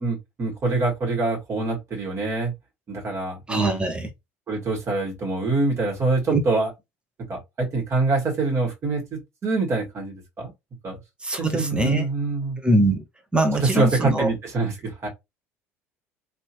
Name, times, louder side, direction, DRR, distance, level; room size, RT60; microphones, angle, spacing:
voice 1, 0.0-2.5 2.9-3.8 4.5-6.7 7.3-10.5 10.8-11.0 11.4-12.6 13.5-15.1, right 3 dB, 35° right, 1.8 m, -25 dB
voice 2, 3.5-4.1 6.3-6.4 11.2-12.0 12.6-13.0 13.3-14.3, right 1 dB, 15° right, 1.0 m, -22 dB
3.0 x 3.0 x 3.0 m
figure-of-eight pair, 60°, 8 cm